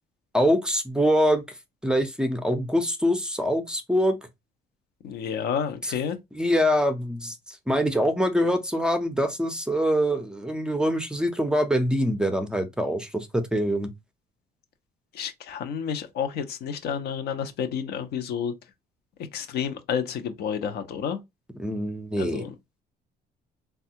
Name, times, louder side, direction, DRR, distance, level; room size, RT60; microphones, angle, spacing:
voice 1, 0.3-1.4 1.8-4.2 5.8-5.9 6.3-13.9 21.6-22.4, equal, 5° right, 0.5 m, -24 dB
voice 2, 5.0-6.2 15.1-18.5 19.3-21.2 22.2-22.5, left 7 dB, 75° left, 0.6 m, -30 dB
3.3 x 2.3 x 2.7 m
cardioid pair, 110°, 17 cm